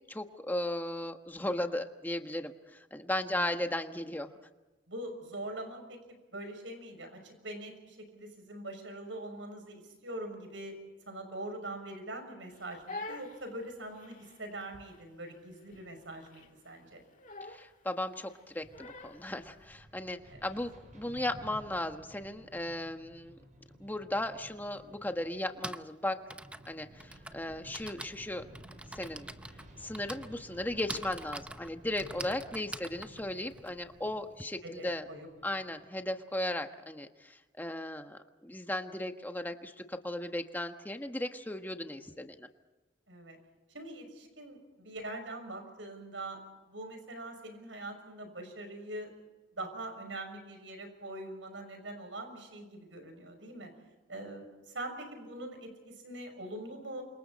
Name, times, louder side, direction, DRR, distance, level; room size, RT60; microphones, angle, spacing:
voice 1, 0.1-4.3 17.5-23.4 23.8-26.2 26.6-28.4 28.9-29.3 29.8-35.0 35.4-42.5, left 1 dB, 10° left, 6 dB, 1.4 m, -36 dB
voice 2, 4.9-10.8 11.1-17.0 20.3-20.4 34.6-35.3 43.1-43.4 43.7-46.4 46.7-49.1 49.6-53.7 54.1-57.0, right 1 dB, 90° right, 6 dB, 6.5 m, -43 dB
Crying sobbing, 12.5-19.4, left 2 dB, 45° left, 1.8 m, -47 dB
sound 1, 18.6-36.1, right 1 dB, 45° right, 6.7 m, -54 dB
Typing, 24.3-24.4 25.3-34.4, right 1 dB, 5° right, 0.7 m, -45 dB
29.0 x 27.0 x 4.3 m, 1.2 s
head